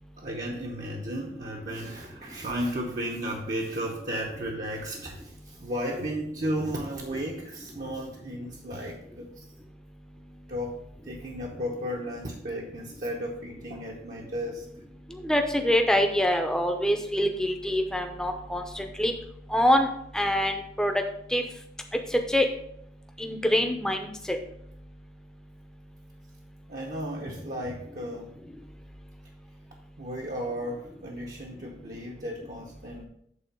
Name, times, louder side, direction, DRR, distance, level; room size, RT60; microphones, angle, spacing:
voice 1, 0.2-9.5 10.5-14.7 26.7-28.4 30.0-33.0, equal, 45° right, 0 dB, 0.9 m, -34 dB
voice 2, 15.2-19.1 19.5-19.9 20.1-20.9 21.3-21.4 22.3-22.5 23.2-24.4, left 1 dB, 5° left, 4 dB, 0.7 m, -25 dB
8.4 x 3.9 x 5.3 m, 0.72 s
head